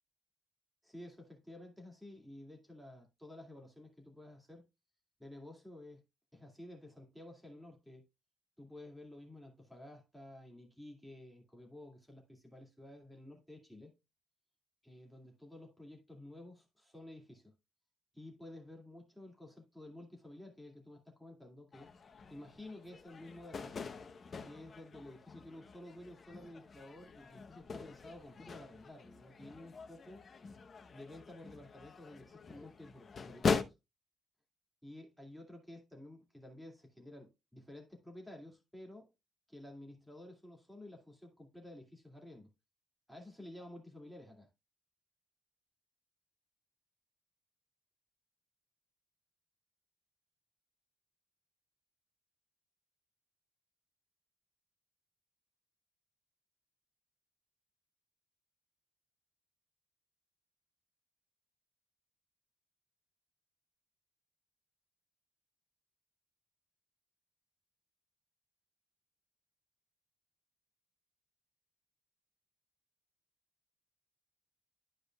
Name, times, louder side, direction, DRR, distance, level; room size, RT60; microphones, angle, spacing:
voice 1, 0.8-4.6 5.2-6.0 6.3-8.0 8.6-13.9 14.8-17.5 18.1-21.9 22.3-23.8 24.4-30.2 30.9-33.7 34.8-39.1 39.5-42.5 43.1-44.5, left 1 dB, ahead, 2.3 m, -52 dB
sound 1, 21.7-33.6, left 5 dB, 40° left, 0.9 m, -42 dB
12.5 x 5.0 x 2.3 m
cardioid pair, 135°, 0 cm